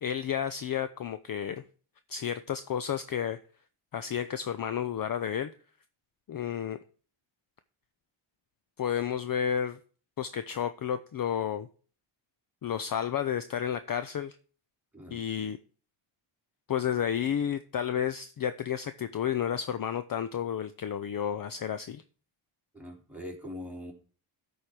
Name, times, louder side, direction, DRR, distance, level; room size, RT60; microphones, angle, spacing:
voice 1, 0.0-1.6 2.1-3.4 3.9-5.5 6.3-6.8 8.8-9.8 10.2-11.7 12.6-14.4 15.1-15.6 16.7-22.0, left 9 dB, 45° left, 11 dB, 0.6 m, -31 dB
voice 2, 22.7-23.9, left 1 dB, 5° right, -1 dB, 2.9 m, -42 dB
13.0 x 4.5 x 4.9 m, 0.39 s
cardioid pair, 110°, 50 cm